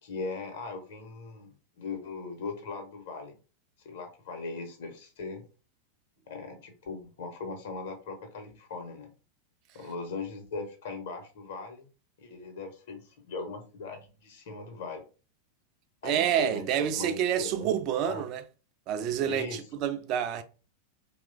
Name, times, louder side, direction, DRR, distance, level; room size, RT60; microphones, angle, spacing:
voice 1, 0.0-3.3 3.8-5.4 6.3-9.1 9.7-11.9 12.2-15.0 16.0-16.6 16.9-18.2 19.2-19.9, left 4 dB, 55° left, 0.6 m, -39 dB
voice 2, 16.0-18.4 18.9-20.4, right 10 dB, 40° right, 0.3 m, -28 dB
2.9 x 2.0 x 2.4 m
figure-of-eight pair, 90°, 0 cm